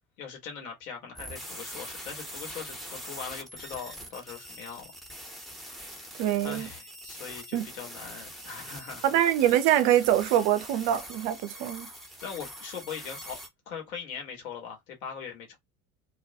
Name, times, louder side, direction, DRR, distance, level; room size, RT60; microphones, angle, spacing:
voice 1, 0.2-4.9 6.4-9.2 12.2-13.4 13.7-15.6, left 6 dB, 70° left, 1.2 m, -41 dB
sound 1, 1.2-13.5, equal, ahead, 0.6 m, -43 dB
voice 2, 6.2-6.7 7.5-7.7 9.0-11.9, right 11 dB, 50° right, 0.6 m, -24 dB
2.3 x 2.1 x 2.7 m
figure-of-eight pair, 65°, 43 cm